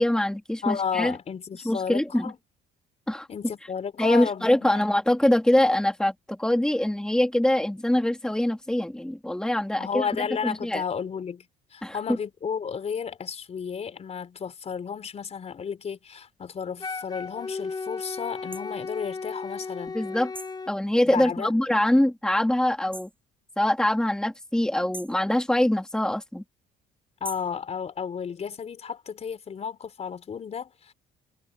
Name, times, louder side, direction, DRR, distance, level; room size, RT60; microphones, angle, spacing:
voice 1, 0.0-1.2 1.6-2.3 3.1-3.3 4.0-10.1 10.4-10.8 11.8-12.0 19.9-20.3 20.7-23.1 23.6-26.4, left 1 dB, 5° left, 2.6 m, -23 dB
voice 2, 0.6-2.4 3.3-4.9 9.7-11.5 11.7-20.0 21.0-21.5 27.2-30.9, left 6 dB, 40° left, 4.2 m, -33 dB
Wind instrument woodwind instrument, 16.8-20.7, left 4 dB, 25° left, 7.9 m, -35 dB
sound 1, 18.5-18.7 20.3-20.6 22.9-23.2 24.9-25.2 27.2-27.6, right 2 dB, 10° right, 6.0 m, -41 dB
cardioid pair, 110°, 17 cm